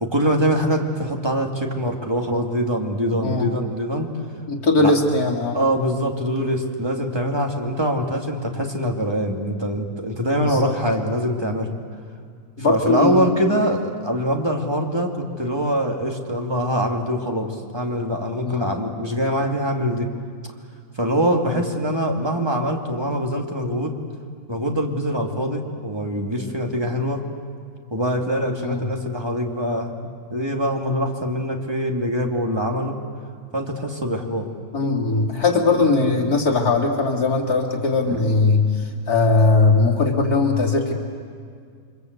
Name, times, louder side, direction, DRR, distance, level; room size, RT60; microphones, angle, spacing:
voice 1, 0.0-4.1 4.8-4.9 5.5-11.7 12.7-20.1 21.0-24.0 24.5-27.2 27.9-33.0 33.5-34.5 35.7-35.8 38.1-38.3, equal, 15° right, 1 dB, 2.6 m, -23 dB
voice 2, 4.5-5.6 10.4-10.8 12.6-13.3 18.4-18.7 21.5-21.6 28.6-28.9 34.7-40.9, left 3 dB, 85° left, 1 dB, 3.3 m, -20 dB
29.5 x 24.5 x 8.2 m, 2.1 s
omnidirectional pair, 1.6 m